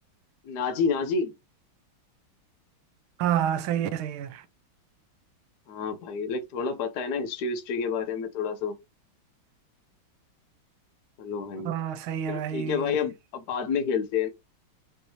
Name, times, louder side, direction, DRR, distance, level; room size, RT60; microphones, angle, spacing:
voice 1, 0.4-1.3 5.7-8.8 11.2-11.7 12.3-14.3, left 5 dB, 65° left, 1.0 m, -29 dB
voice 2, 3.2-4.4 11.6-12.9, right 10 dB, 85° right, 1.4 m, -28 dB
5.3 x 3.2 x 2.8 m
omnidirectional pair, 2.2 m